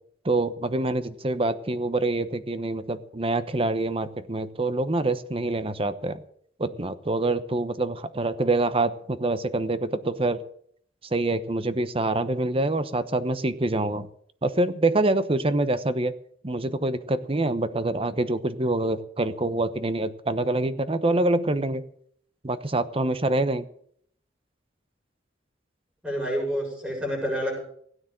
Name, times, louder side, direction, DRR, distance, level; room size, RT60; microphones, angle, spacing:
voice 1, 0.2-6.2 6.6-10.4 11.1-14.1 14.4-16.1 16.4-21.8 22.4-23.7, right 2 dB, 30° right, 12 dB, 1.0 m, -26 dB
voice 2, 26.0-27.6, equal, 5° right, -1 dB, 7.2 m, -28 dB
17.0 x 9.5 x 7.5 m, 0.63 s
head